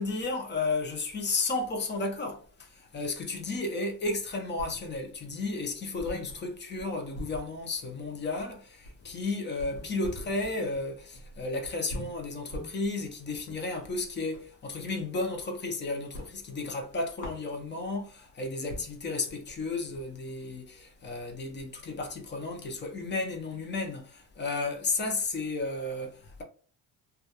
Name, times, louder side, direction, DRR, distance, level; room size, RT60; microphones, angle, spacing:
voice 1, 0.0-26.4, left 3 dB, 25° left, 0.5 m, -33 dB
sound 1, 4.0-5.2 5.5-5.6 6.0-14.6 14.9-15.7 16.0-18.0 18.4-18.5 18.7-22.8, left 1 dB, 80° left, 0.9 m, -45 dB
2.3 x 2.2 x 2.7 m
cardioid pair, 105°, 40 cm